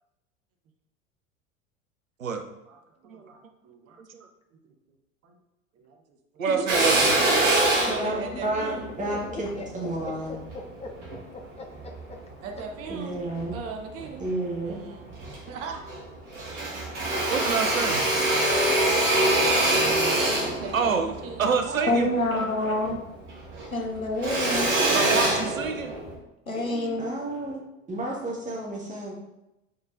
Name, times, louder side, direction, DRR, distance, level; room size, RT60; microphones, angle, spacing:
voice 1, 2.7-4.0 4.6-4.7 5.2-5.4 5.8-6.6 7.0-8.9 12.4-13.2 13.5-14.2 14.6-15.1 15.5-15.8 20.4-21.9, right 4 dB, 35° right, 3 dB, 0.9 m, -39 dB
voice 2, 6.4-7.1 17.3-18.1 20.7-21.1 21.4-22.1 24.9-25.9, right 5 dB, 80° right, 6 dB, 0.7 m, -27 dB
Drill, 6.7-11.2 11.8-12.9 13.4-14.3 14.7-14.8 15.1-16.1 16.3-23.0 23.3-26.1, right 1 dB, 65° right, 1.7 m, -25 dB
voice 3, 8.0-9.5 9.7-10.3 12.9-13.6 14.2-14.8 27.0-27.6 27.9-29.1, right 1 dB, 20° right, -2 dB, 1.8 m, -31 dB
voice 4, 8.8-11.7 12.1-12.2 26.5-27.1, left 3 dB, 15° left, 2 dB, 0.8 m, -40 dB
voice 5, 21.9-23.0 23.7-25.1 26.5-27.1, left 1 dB, 90° left, 1 dB, 0.9 m, -27 dB
8.6 x 4.5 x 2.6 m, 0.92 s
figure-of-eight pair, 75°, 40 cm